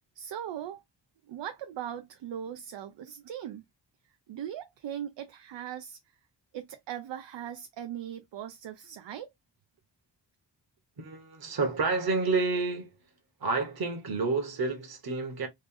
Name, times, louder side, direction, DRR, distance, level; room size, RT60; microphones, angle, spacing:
voice 1, 0.2-0.8 1.3-3.7 4.3-6.0 6.5-9.3, right 10 dB, 80° right, 0.5 m, -39 dB
voice 2, 11.0-12.9 13.4-15.5, right 3 dB, 55° right, 1.2 m, -29 dB
3.2 x 2.5 x 3.6 m
wide cardioid pair, 150°, 43 cm